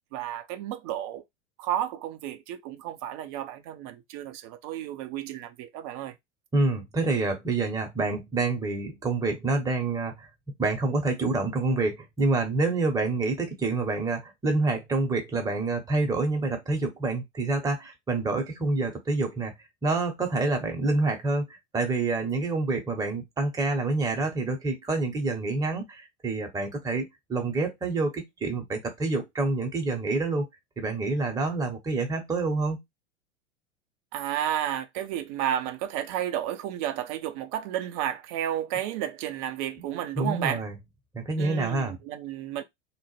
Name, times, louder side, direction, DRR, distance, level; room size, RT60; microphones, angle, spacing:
voice 1, 0.1-1.2 1.6-6.2 34.1-40.6 41.4-42.6, right 11 dB, 30° right, 0.4 m, -32 dB
voice 2, 6.5-10.3 10.6-19.5 19.8-30.4 30.8-32.8 40.1-40.7 41.1-42.0, right 3 dB, 10° right, 0.7 m, -27 dB
2.8 x 2.0 x 3.1 m
figure-of-eight pair, 90°, 36 cm